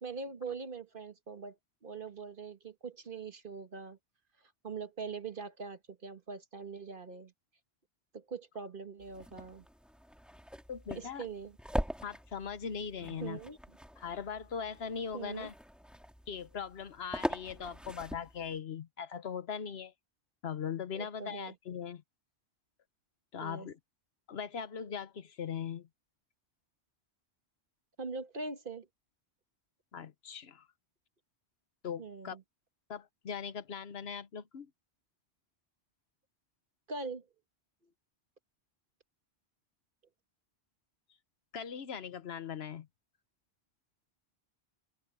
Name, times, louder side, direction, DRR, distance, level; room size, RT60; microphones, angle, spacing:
voice 1, 0.0-1.6 1.8-4.0 4.6-7.3 8.1-9.6 10.9-11.6 13.1-13.6 15.1-15.5 20.9-21.5 23.4-23.7 28.0-28.9 32.0-32.4 36.9-37.3, right 4 dB, 55° right, 1.6 m, -42 dB
sound 1, 9.0-18.6, equal, ahead, 1.9 m, -42 dB
voice 2, 10.7-11.3 12.0-13.4 14.0-15.5 16.3-19.9 20.4-22.0 23.3-23.8 24.3-25.9 29.9-30.7 31.8-32.4 32.9-34.7 41.5-42.9, left 7 dB, 70° left, 1.2 m, -40 dB
omnidirectional pair, 1.1 m